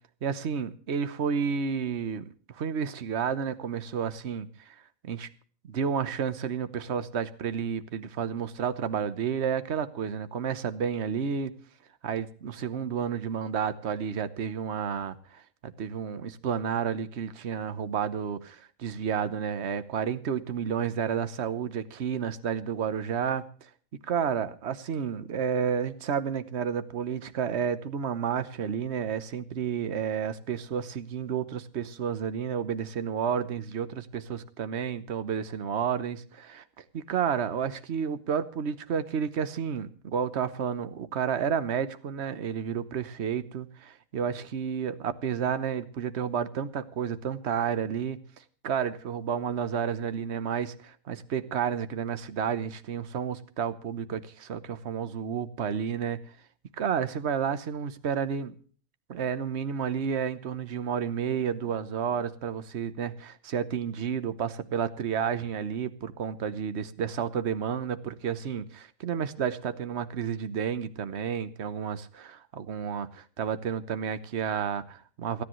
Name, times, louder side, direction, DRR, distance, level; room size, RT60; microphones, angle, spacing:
voice 1, 0.2-4.7 5.0-5.3 5.6-11.5 12.0-23.7 24.1-48.2 48.6-56.2 56.8-58.5 59.1-75.4, right 7 dB, 55° right, 12 dB, 1.2 m, -31 dB
28.0 x 10.0 x 3.1 m, 0.42 s
omnidirectional pair, 1.5 m